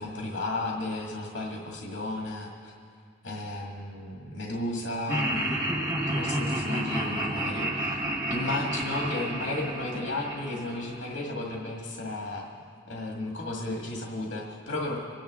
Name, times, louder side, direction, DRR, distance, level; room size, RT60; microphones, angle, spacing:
voice 1, 0.0-2.7 3.2-8.0 8.3-12.5 12.9-15.0, left 2 dB, 90° left, -1 dB, 1.9 m, -34 dB
Laughter, 5.1-11.3, right 1 dB, 20° right, 1.6 m, -30 dB
26.5 x 10.0 x 3.7 m, 2.2 s
head